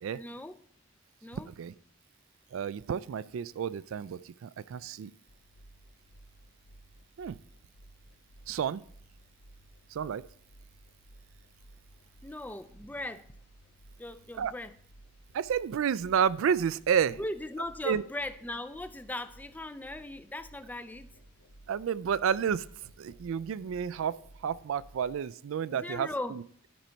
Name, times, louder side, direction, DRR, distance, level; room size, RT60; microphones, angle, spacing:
voice 1, 0.1-0.6 1.2-1.5 12.2-13.3 14.0-14.7 17.1-21.2 25.7-26.4, left 1 dB, 10° left, 12 dB, 0.3 m, -39 dB
voice 2, 2.5-5.1 7.2-7.4 8.5-8.8 9.9-10.2 14.4-14.5 15.3-17.2 17.8-18.0 21.7-22.6 23.0-24.2 24.4-26.7, right 7 dB, 70° right, 18 dB, 0.3 m, -30 dB
sound 1, 5.3-25.1, right 1 dB, 80° left, 1.2 m, -57 dB
12.0 x 5.2 x 4.5 m, 0.62 s
head